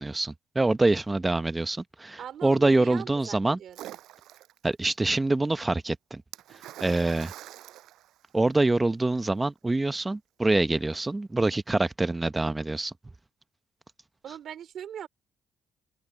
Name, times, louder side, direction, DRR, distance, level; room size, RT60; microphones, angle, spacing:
voice 1, 0.0-3.6 4.6-6.2 6.8-7.3 8.3-12.9, right 2 dB, 15° right, 0.9 m, -25 dB
voice 2, 2.2-3.9 14.2-15.1, right 9 dB, 70° right, 2.8 m, -40 dB
Splash splatter, 3.7-4.7 6.3-8.8, right 14 dB, 85° right, 5.5 m, -45 dB
open air
cardioid pair, 90°, 0 cm